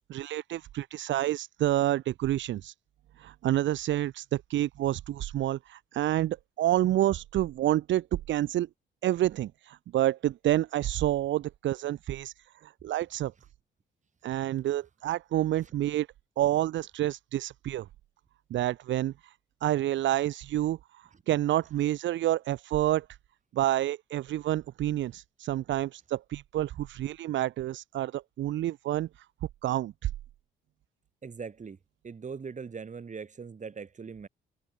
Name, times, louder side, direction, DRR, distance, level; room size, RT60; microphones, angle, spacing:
voice 1, 0.1-2.7 3.2-8.7 9.0-12.3 12.6-13.3 14.2-16.1 16.4-17.9 18.5-19.3 19.6-23.1 23.5-29.3 29.6-30.1, right 13 dB, 70° right, 0.7 m, -28 dB
voice 2, 31.2-31.8 32.0-34.3, right 5 dB, 40° right, 6.2 m, -41 dB
cardioid pair, 90°, 20 cm